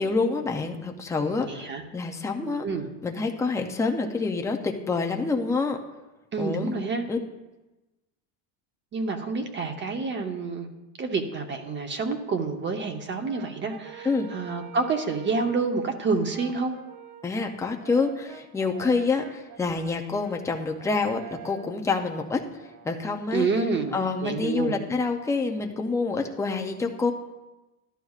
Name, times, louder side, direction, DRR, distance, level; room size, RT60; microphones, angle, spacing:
voice 1, 0.0-2.6 3.0-5.8 6.4-6.8 7.1-7.2 14.0-14.3 17.2-23.5 23.9-27.1, left 4 dB, 5° left, 3 dB, 0.3 m, -27 dB
voice 2, 1.5-1.8 2.4-2.9 6.3-7.0 8.9-10.7 11.0-16.7 23.3-24.8, right 4 dB, 25° right, 6 dB, 0.8 m, -28 dB
Brass instrument, 13.2-15.7 16.3-23.3, right 9 dB, 75° right, 1.0 m, -46 dB
14.0 x 11.5 x 2.4 m, 1.1 s
cardioid pair, 150°, 46 cm